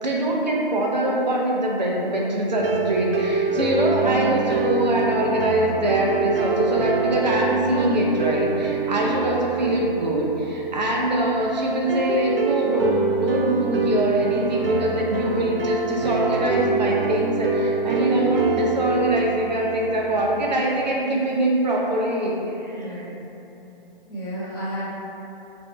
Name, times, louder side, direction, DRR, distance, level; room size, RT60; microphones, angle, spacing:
voice 1, 0.0-23.1, right 1 dB, 50° right, -2 dB, 0.8 m, -23 dB
sound 1, 2.6-20.6, right 4 dB, 75° right, 0.5 m, -25 dB
voice 2, 22.7-23.2 24.1-24.8, equal, 25° left, -10 dB, 1.2 m, -32 dB
5.1 x 2.7 x 3.3 m, 3.0 s
figure-of-eight pair, 145°, 29 cm